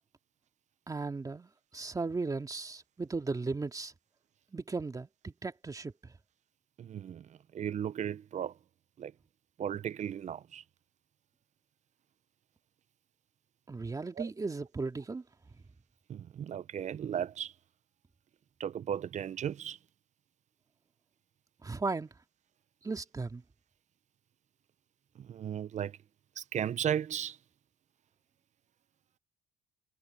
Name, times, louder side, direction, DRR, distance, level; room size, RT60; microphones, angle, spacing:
voice 1, 0.9-1.5 1.7-3.9 4.5-6.1 13.7-15.2 21.6-22.1 22.8-23.4, right 3 dB, 20° right, 2.5 m, -36 dB
voice 2, 6.8-8.6 9.0-9.1 9.6-10.6 14.2-14.3 16.1-17.5 18.6-19.8 25.1-26.0 26.4-27.4, right 9 dB, 45° right, 0.8 m, -36 dB
cardioid pair, 110°, 17 cm